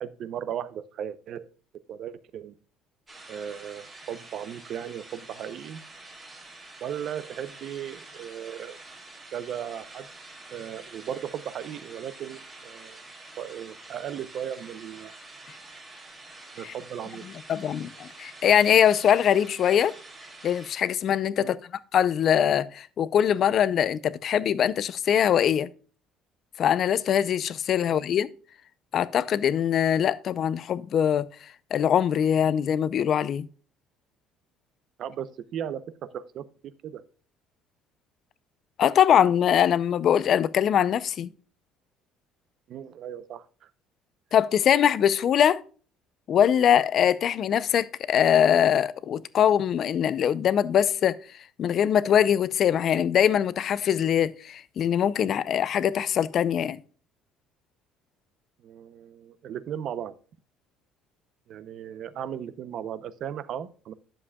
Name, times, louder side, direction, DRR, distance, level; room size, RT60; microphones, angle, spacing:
voice 1, 0.0-1.5 1.9-2.6 3.3-5.8 6.8-8.8 9.3-10.1 10.5-13.0 13.4-15.1 16.6-17.2 21.4-21.6 27.8-27.9 35.0-37.0 42.7-43.7 58.6-60.2 61.5-63.9, right 9 dB, 40° right, 0.6 m, -36 dB
sound 1, 3.1-20.7, right 2 dB, 10° right, 2.1 m, -47 dB
voice 2, 17.5-20.0 20.4-21.6 21.9-25.7 26.6-28.3 28.9-31.3 31.7-33.5 38.8-41.3 44.3-45.6 46.3-51.2 51.6-56.8, left 9 dB, 35° left, 0.4 m, -22 dB
11.0 x 7.3 x 2.2 m
cardioid pair, 175°, 0 cm